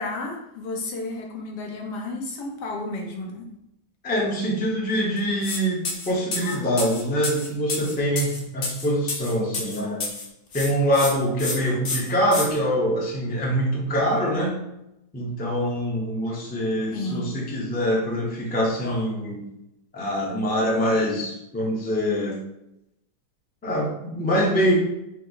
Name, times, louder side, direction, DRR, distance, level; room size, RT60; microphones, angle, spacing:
voice 1, 0.0-3.5 16.9-17.3, left 2 dB, 85° left, 1 dB, 1.4 m, -32 dB
voice 2, 4.0-10.0 10.5-14.6 15.1-19.4 19.9-22.4 23.6-24.7, equal, 10° left, -3 dB, 0.4 m, -24 dB
sound 1, 5.4-5.6 5.8-10.3 10.5-11.1 11.4-11.5 11.8-12.4, left 3 dB, 50° left, 0.7 m, -29 dB
5.3 x 2.0 x 3.9 m, 0.84 s
omnidirectional pair, 1.7 m